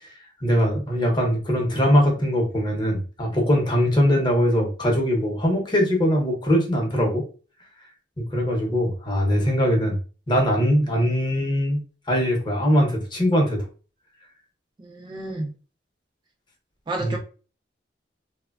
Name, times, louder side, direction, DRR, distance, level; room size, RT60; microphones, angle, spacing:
voice 1, 0.4-7.2 8.3-10.0 10.3-11.8 12.1-13.7 17.0-17.2, equal, 25° left, 0.7 m, -21 dB
voice 2, 15.0-15.5 16.9-17.2, right 2 dB, 25° right, 0.3 m, -29 dB
3.1 x 2.1 x 2.3 m
head